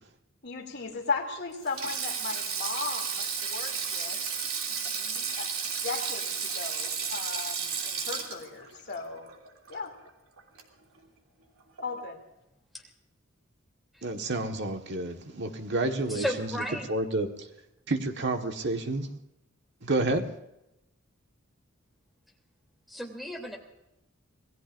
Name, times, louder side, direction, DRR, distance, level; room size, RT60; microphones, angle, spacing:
voice 1, 0.4-4.2 4.9-9.3 9.7-9.9 11.8-12.2, left 4 dB, 50° left, 1 dB, 2.9 m, -36 dB
Sink (filling or washing), 1.6-10.1 10.4-10.6 11.8-12.0, right 6 dB, 85° right, 2.8 m, -33 dB
voice 2, 14.0-16.5 16.9-17.3 17.9-19.1 19.8-20.3, right 2 dB, 55° right, 5 dB, 1.6 m, -29 dB
voice 3, 16.1-16.9 22.9-23.6, equal, ahead, 2 dB, 3.1 m, -33 dB
27.5 x 19.0 x 2.6 m, 0.90 s
head